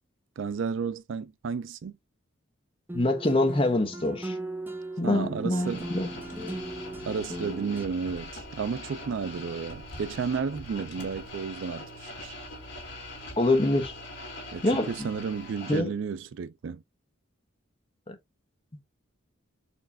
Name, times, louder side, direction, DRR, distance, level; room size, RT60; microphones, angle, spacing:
voice 1, 0.4-2.0 5.0-5.9 7.0-12.4 14.5-16.8, right 5 dB, 70° right, 0.4 m, -32 dB
voice 2, 2.9-4.3 5.0-6.1 13.4-13.9 14.6-14.9 15.7-15.9 18.1-18.2, left 2 dB, 25° left, 0.8 m, -25 dB
sound 1, 2.9-7.8, right 1 dB, 10° right, 0.7 m, -37 dB
sound 2, 5.6-15.8, left 2 dB, 60° left, 1.9 m, -42 dB
4.4 x 3.2 x 2.6 m
head